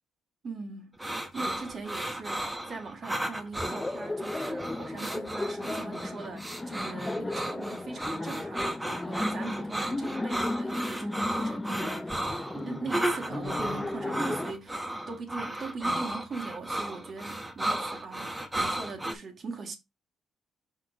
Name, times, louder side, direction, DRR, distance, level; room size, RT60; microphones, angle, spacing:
voice 1, 0.4-1.0 1.3-12.2 12.5-14.8 15.1-19.8, right 4 dB, 50° right, 1.7 m, -40 dB
sound 1, 1.0-19.1, right 1 dB, 10° right, 1.2 m, -34 dB
Laughter, 3.6-14.5, left 2 dB, 15° left, 0.5 m, -35 dB
6.0 x 4.4 x 3.5 m
cardioid pair, 90°, 0 cm